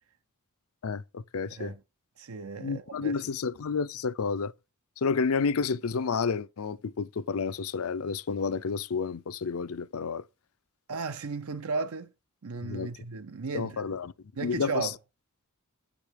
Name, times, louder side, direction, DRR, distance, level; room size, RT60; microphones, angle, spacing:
voice 1, 0.8-1.7 2.6-4.5 5.0-10.2 12.6-12.9 13.5-14.1 14.4-14.9, left 5 dB, 75° left, 0.5 m, -30 dB
voice 2, 2.2-3.1 10.9-12.1 12.4-13.9 14.4-14.9, right 4 dB, 80° right, 0.7 m, -35 dB
8.9 x 5.1 x 4.7 m
head